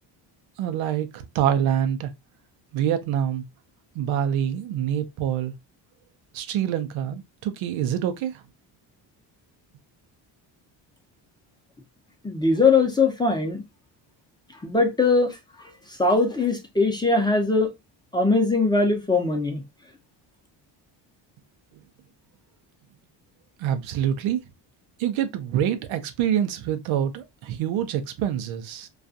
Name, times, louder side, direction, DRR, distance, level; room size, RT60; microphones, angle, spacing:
voice 1, 0.6-2.1 2.7-3.4 4.0-5.5 6.3-8.4 23.6-24.4 25.0-28.9, right 10 dB, 85° right, 0.6 m, -26 dB
voice 2, 12.2-13.6 14.6-15.3 16.0-17.7 18.1-19.6, left 3 dB, 10° left, 0.6 m, -21 dB
2.4 x 2.3 x 2.6 m
cardioid pair, 90°, 46 cm